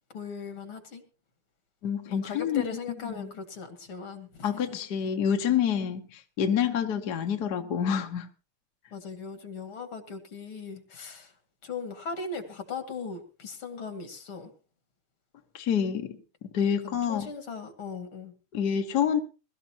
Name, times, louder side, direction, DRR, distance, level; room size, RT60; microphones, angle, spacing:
voice 1, 0.1-1.0 2.1-4.8 8.9-11.3 11.6-14.5 16.8-18.3, left 5 dB, 75° left, 2.9 m, -38 dB
voice 2, 1.8-2.7 3.1-3.3 4.4-8.3 15.5-16.2 16.4-17.3 18.5-19.2, left 8 dB, 55° left, 1.5 m, -27 dB
21.5 x 13.5 x 2.9 m
omnidirectional pair, 2.4 m